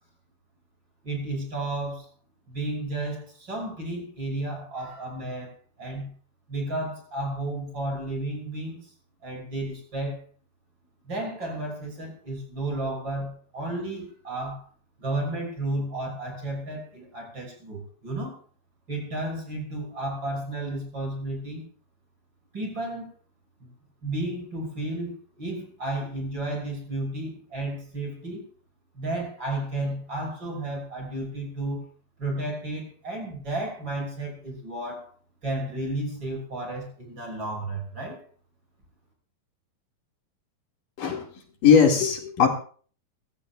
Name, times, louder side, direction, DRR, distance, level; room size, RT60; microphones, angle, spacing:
voice 1, 1.0-2.1 2.5-5.5 5.8-6.1 6.5-8.9 9.2-10.2 11.0-14.7 15.0-18.4 18.9-21.7 22.5-23.1 23.6-23.7 24.0-28.4 28.9-31.8 32.2-35.1 35.4-38.2, right 2 dB, 30° right, 6.3 m, -32 dB
voice 2, 41.6-42.5, left 6 dB, 65° left, 3.5 m, -19 dB
24.5 x 15.5 x 2.4 m
omnidirectional pair, 4.3 m